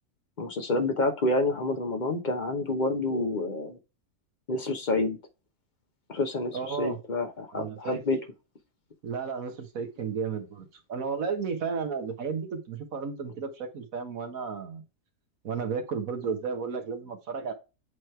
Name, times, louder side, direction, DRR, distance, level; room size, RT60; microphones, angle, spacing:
voice 1, 0.4-3.8 4.5-5.2 6.1-8.2, left 2 dB, 35° left, 1.0 m, -28 dB
voice 2, 6.5-7.0 7.5-8.0 9.0-14.8 15.4-17.5, right 5 dB, 65° right, 1.6 m, -33 dB
8.1 x 3.2 x 4.4 m
omnidirectional pair, 1.6 m